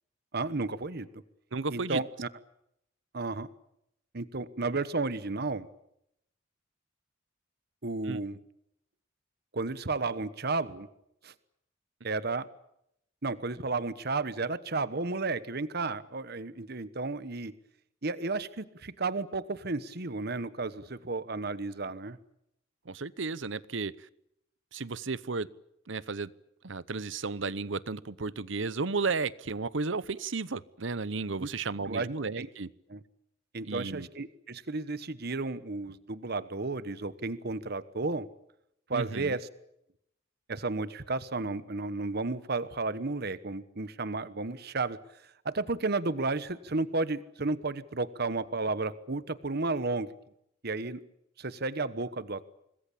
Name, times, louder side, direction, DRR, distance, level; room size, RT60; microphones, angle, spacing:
voice 1, 0.3-1.1 1.7-2.3 3.1-3.5 4.1-5.7 7.8-8.4 9.5-10.9 11.2-11.3 12.0-12.5 13.2-17.5 18.0-22.2 31.4-31.5 31.9-32.1 32.4-32.5 32.9-33.0 33.5-38.3 38.9-39.5 40.5-45.0 45.4-50.1 50.6-51.0 51.4-52.5, right 3 dB, 55° right, 15 dB, 1.2 m, -33 dB
voice 2, 1.5-2.0 8.0-8.2 22.9-24.1 24.7-25.5 25.9-26.3 26.6-32.7 33.6-34.1 38.9-39.4, right 4 dB, 70° right, 19 dB, 0.9 m, -33 dB
25.5 x 20.5 x 8.6 m, 0.79 s
head